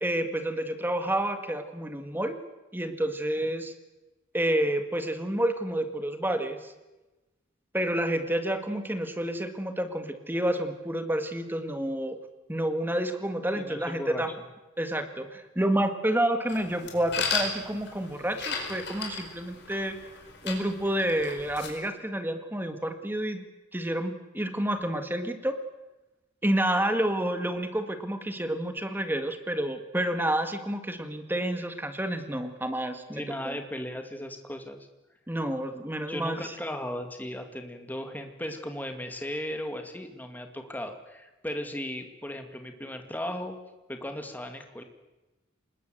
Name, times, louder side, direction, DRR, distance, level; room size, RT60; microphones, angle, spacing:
voice 1, 0.0-2.4 2.7-3.7 4.3-6.7 7.7-12.2 12.5-14.3 14.8-20.0 20.4-23.4 23.7-25.6 26.4-33.6 35.3-36.5, right 1 dB, 10° right, 7 dB, 1.9 m, -29 dB
voice 2, 13.5-14.2 33.1-34.8 36.1-43.6 43.9-44.8, left 1 dB, 10° left, 5 dB, 2.3 m, -36 dB
sound 1, 16.5-21.7, left 5 dB, 60° left, 4.9 m, -35 dB
25.0 x 20.5 x 7.9 m, 1.1 s
head